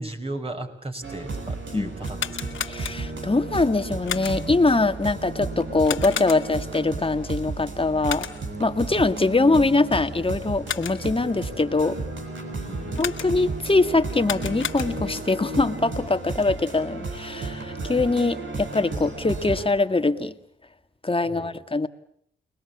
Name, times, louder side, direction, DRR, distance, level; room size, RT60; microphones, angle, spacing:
voice 1, 0.0-2.6 12.6-13.0 21.2-21.6, right 1 dB, 30° right, 4 dB, 6.0 m, -36 dB
sound 1, 1.0-19.7, right 3 dB, 70° right, 5.4 m, -33 dB
sound 2, 2.0-3.3 4.1-4.6 5.8-6.7 8.0-8.6 10.4-11.2 13.0-13.6 14.1-15.2, left 8 dB, 75° left, 2.2 m, -33 dB
voice 2, 2.7-8.3 8.6-12.0 13.0-20.3 21.0-21.9, left 3 dB, 25° left, 9 dB, 2.1 m, -23 dB
30.0 x 20.5 x 8.6 m, 0.68 s
supercardioid pair, 45°, 20 cm